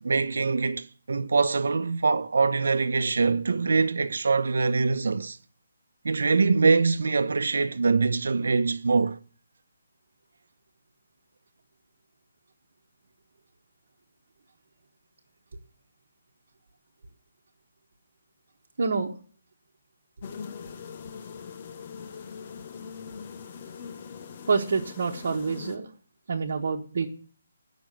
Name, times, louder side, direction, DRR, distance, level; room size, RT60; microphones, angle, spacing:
voice 1, 0.0-5.4 6.0-9.2, right 4 dB, 65° right, 0.8 m, -24 dB
voice 2, 18.8-19.1 24.5-25.9 26.3-27.1, right 4 dB, 45° right, 1.3 m, -27 dB
sound 1, 20.2-25.8, left 6 dB, 25° left, 0.6 m, -41 dB
10.5 x 6.2 x 7.6 m
hypercardioid pair, 180°, 0 cm